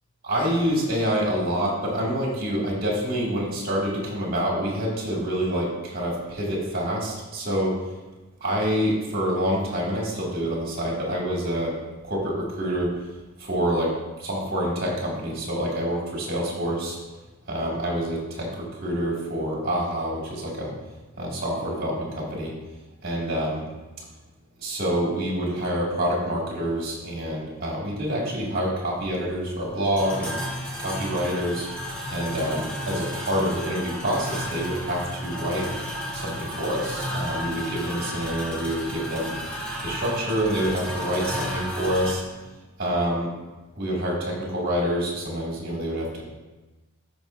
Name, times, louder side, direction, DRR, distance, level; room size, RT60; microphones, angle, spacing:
voice 1, 0.2-7.7 8.4-11.7 12.0-13.0 13.4-13.9 14.2-17.0 17.5-18.5 18.8-20.7 21.2-22.5 23.0-23.7 24.6-30.4 30.8-31.6 32.1-35.7 36.1-39.3 39.8-42.2 42.8-43.3 43.8-46.2, equal, 45° right, -3 dB, 2.2 m, -27 dB
sound 1, 28.9-42.1, equal, 5° left, 1.3 m, -33 dB
13.0 x 5.3 x 2.6 m, 1.1 s
head